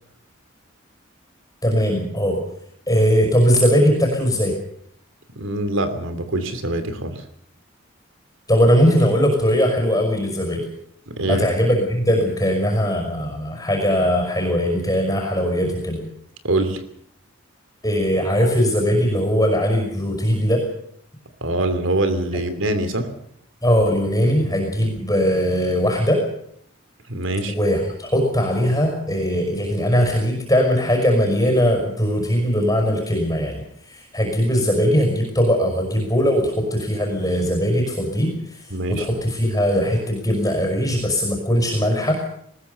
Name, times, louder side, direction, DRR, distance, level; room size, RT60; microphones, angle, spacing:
voice 1, 1.6-2.4 2.9-4.6 8.5-10.6 11.3-16.1 17.8-20.6 22.3-22.4 23.6-26.2 27.5-42.2, equal, 15° left, 2 dB, 5.6 m, -20 dB
voice 2, 5.3-7.2 11.1-11.4 16.4-16.8 21.4-23.1 27.1-27.5 38.7-39.1, right 1 dB, 70° right, 10 dB, 2.9 m, -24 dB
20.5 x 20.0 x 6.9 m, 0.69 s
head